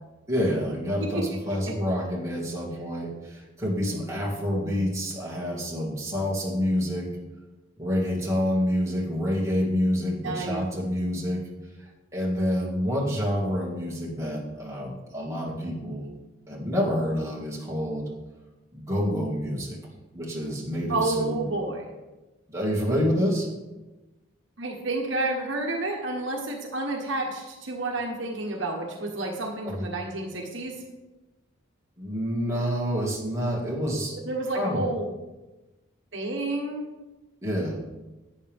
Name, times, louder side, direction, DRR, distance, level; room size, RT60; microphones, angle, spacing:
voice 1, 0.3-7.1 7.8-11.4 12.1-16.0 16.5-18.1 18.7-19.8 20.1-21.4 22.5-23.5 29.7-29.8 32.0-34.2 34.5-34.8 37.4-37.8, equal, 15° right, -4 dB, 2.2 m, -27 dB
voice 2, 10.0-10.6 20.9-21.9 24.6-30.8 34.2-35.1 36.1-36.9, right 2 dB, 60° right, 0 dB, 1.4 m, -30 dB
11.5 x 9.2 x 3.6 m, 1.1 s
head